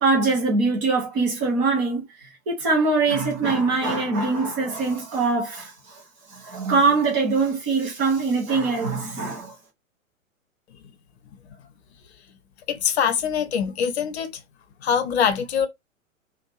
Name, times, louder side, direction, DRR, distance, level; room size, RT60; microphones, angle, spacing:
voice 1, 0.0-2.0 2.5-5.7 6.5-9.5, right 3 dB, 10° right, 0.3 m, -22 dB
voice 2, 12.7-14.4 14.8-15.7, left 7 dB, 55° left, 0.7 m, -23 dB
2.5 x 2.1 x 2.8 m
figure-of-eight pair, 110°, 40 cm